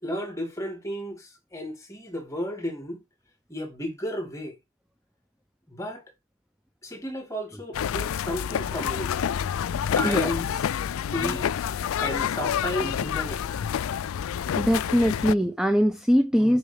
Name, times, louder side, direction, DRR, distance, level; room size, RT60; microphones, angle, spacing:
voice 1, 0.0-3.0 3.5-4.6 5.7-6.0 6.8-9.1 9.9-10.5 11.1-13.5, left 1 dB, 15° left, 2.2 m, -33 dB
sound 1, 7.7-15.3, left 8 dB, 75° left, 0.3 m, -28 dB
voice 2, 14.6-16.6, equal, 5° right, 0.6 m, -22 dB
6.8 x 5.5 x 3.4 m
head